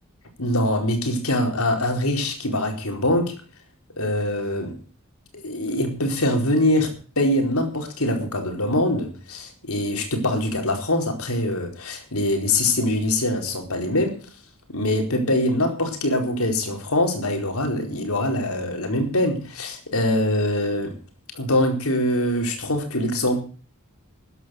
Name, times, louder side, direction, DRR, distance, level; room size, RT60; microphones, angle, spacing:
voice 1, 0.4-3.3 4.0-4.7 5.4-14.2 14.7-21.0 21.3-23.4, left 1 dB, 80° left, 4.6 m, -23 dB
14.0 x 10.5 x 6.5 m
head